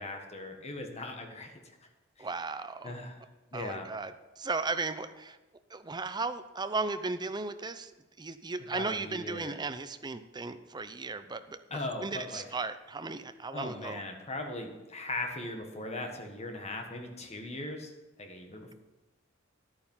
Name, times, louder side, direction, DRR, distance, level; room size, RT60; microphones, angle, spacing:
voice 1, 0.0-1.5 2.2-2.3 2.8-3.2 3.5-3.9 8.7-9.5 11.7-12.4 13.5-17.9 18.2-18.7, left 2 dB, 35° left, 3 dB, 1.5 m, -39 dB
voice 2, 2.2-2.9 3.5-5.4 5.7-7.9 8.2-14.0, right 3 dB, 20° right, 11 dB, 0.6 m, -36 dB
11.0 x 9.0 x 5.6 m, 1.1 s
head